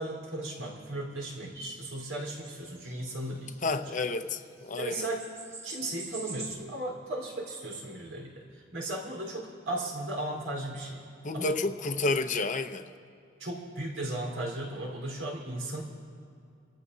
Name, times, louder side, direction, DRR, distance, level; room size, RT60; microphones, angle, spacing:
voice 1, 0.0-4.0 4.8-5.3 5.6-11.0 11.3-11.5 13.4-15.8, right 1 dB, 85° right, -2 dB, 4.3 m, -36 dB
sound 1, 1.5-4.0 4.4-4.5 4.7-6.5, right 2 dB, 15° right, 1.4 m, -45 dB
voice 2, 3.6-5.1 11.2-12.9, left 3 dB, 40° left, 8 dB, 0.7 m, -30 dB
28.0 x 14.5 x 2.8 m, 2.5 s
head